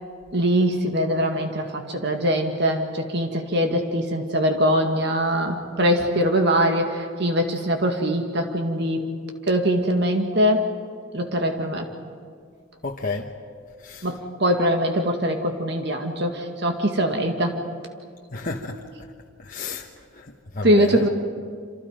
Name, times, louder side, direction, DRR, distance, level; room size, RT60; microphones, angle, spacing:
voice 1, 0.3-9.1 9.5-10.7 11.1-11.9 14.0-17.6 20.6-21.1, equal, 55° right, 4 dB, 2.0 m, -22 dB
voice 2, 12.8-13.3 13.8-14.1 18.3-18.8 19.4-19.9 20.1-20.3 20.5-21.0, left 3 dB, 40° left, 0 dB, 1.2 m, -31 dB
28.0 x 27.0 x 5.2 m, 2.2 s
head